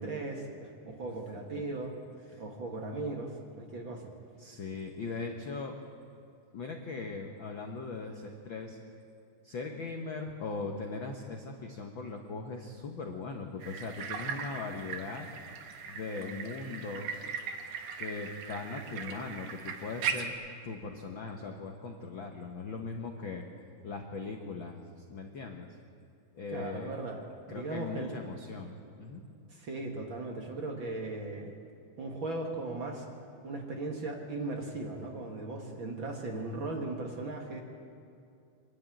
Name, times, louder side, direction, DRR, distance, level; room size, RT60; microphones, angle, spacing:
voice 1, 0.0-1.9 2.4-4.0 18.9-19.2 26.5-27.2 27.5-28.2 29.5-31.5 32.0-33.1 33.4-37.6, right 2 dB, 45° right, 1 dB, 1.9 m, -37 dB
voice 2, 4.4-5.7 6.5-8.8 9.4-15.3 15.9-17.3 18.0-20.3 20.6-23.5 23.8-24.8 25.1-25.7 26.3-26.9 27.5-29.2, left 4 dB, 65° left, 3 dB, 1.2 m, -39 dB
sound 1, 13.6-20.3, right 6 dB, 70° right, 2.6 m, -39 dB
25.0 x 11.5 x 9.1 m, 2.5 s
omnidirectional pair, 3.8 m